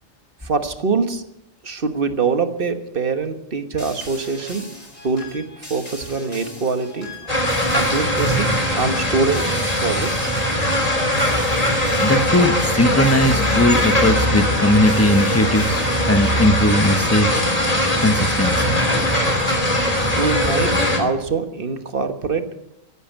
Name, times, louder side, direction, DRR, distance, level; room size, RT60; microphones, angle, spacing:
voice 1, 0.4-1.2 1.6-4.7 5.0-7.1 7.7-9.5 9.8-10.3 20.2-22.6, right 4 dB, 45° right, 8 dB, 1.4 m, -24 dB
sound 1, 3.8-16.7, left 2 dB, 55° left, 5.4 m, -39 dB
sound 2, 7.3-21.0, left 1 dB, 30° left, 3.2 m, -20 dB
voice 2, 12.0-15.8 16.1-17.4 18.0-18.7, left 1 dB, 15° left, 9 dB, 0.9 m, -18 dB
14.5 x 11.0 x 9.0 m, 0.83 s
omnidirectional pair, 1.3 m